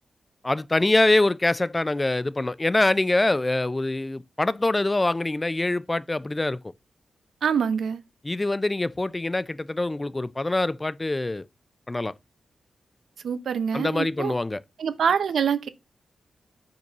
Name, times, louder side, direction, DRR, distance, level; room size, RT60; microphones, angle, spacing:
voice 1, 0.4-6.6 8.2-11.5 11.9-12.1 13.7-14.6, left 2 dB, 15° left, 0.3 m, -24 dB
voice 2, 7.4-8.0 13.2-14.3 14.8-15.7, right 7 dB, 85° right, 0.7 m, -25 dB
5.2 x 5.2 x 4.0 m
wide cardioid pair, 150°, 0 cm